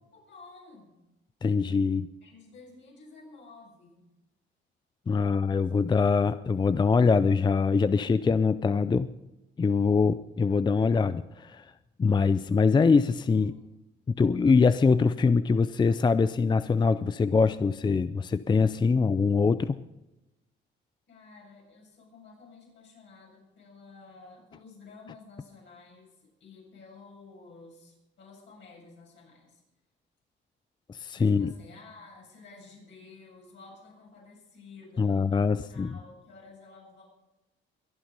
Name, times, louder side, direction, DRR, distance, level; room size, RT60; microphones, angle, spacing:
voice 1, 0.1-1.0 2.2-4.1 13.0-13.8 21.1-29.6 31.1-37.0, left 4 dB, 65° left, -2 dB, 7.7 m, -52 dB
voice 2, 1.4-2.1 5.1-9.1 9.6-11.7 12.0-13.5 14.1-19.8 30.9-31.5 35.0-36.0, left 4 dB, 20° left, 14 dB, 0.4 m, -23 dB
23.0 x 9.4 x 5.3 m, 0.96 s
cardioid pair, 90°, 20 cm